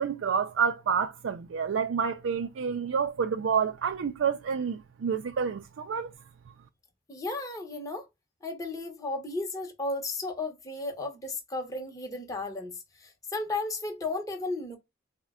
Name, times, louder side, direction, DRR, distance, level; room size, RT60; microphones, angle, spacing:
voice 1, 0.0-6.1, right 6 dB, 70° right, 0.4 m, -29 dB
voice 2, 7.1-8.1 8.4-12.7 13.0-14.8, left 2 dB, 15° left, 0.8 m, -34 dB
4.3 x 2.1 x 3.5 m
head